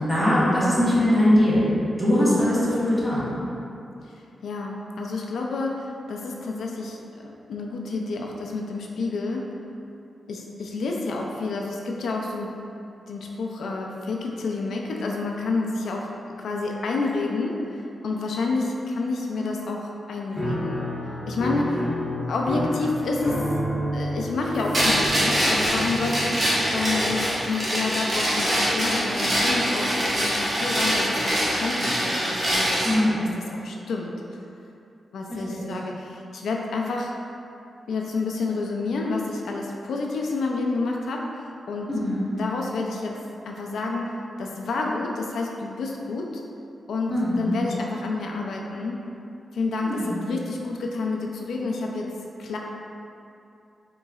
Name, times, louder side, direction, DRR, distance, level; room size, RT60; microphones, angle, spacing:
voice 1, 0.1-1.6 2.0-3.3 32.8-33.2 35.6-35.7 41.9-42.2 47.1-47.5 49.8-50.3, left 1 dB, 5° right, -11 dB, 1.3 m, -21 dB
voice 2, 4.1-9.6 10.3-12.6 13.1-16.1 16.4-20.9 21.3-21.9 22.2-23.5 23.9-34.4 35.1-37.1 37.9-41.9 42.4-43.2 43.5-46.4 46.9-49.0 49.5-52.1 52.4-52.6, left 3 dB, 85° left, 0 dB, 0.3 m, -29 dB
Piano, 20.4-27.1, equal, 20° left, 1.1 m, -30 dB
sound 1, 24.7-33.0, equal, 35° right, 1.0 m, -24 dB
4.0 x 3.7 x 2.3 m, 2.7 s
wide cardioid pair, 125°, 0 cm